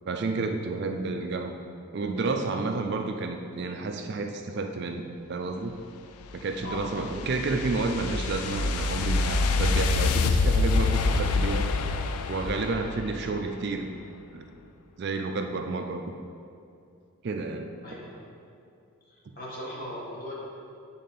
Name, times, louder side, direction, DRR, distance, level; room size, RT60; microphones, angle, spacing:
voice 1, 0.1-1.6 1.9-5.7 6.3-11.7 12.3-13.9 14.3-14.5 15.0-16.0 17.2-17.7, right 3 dB, 50° right, 5 dB, 0.4 m, -30 dB
sound 1, 6.2-13.5, left 3 dB, 85° left, 0.4 m, -26 dB
voice 2, 6.6-7.0 17.8-18.2 19.3-20.3, left 1 dB, 40° left, -6 dB, 1.5 m, -38 dB
8.3 x 3.7 x 4.1 m, 2.5 s
head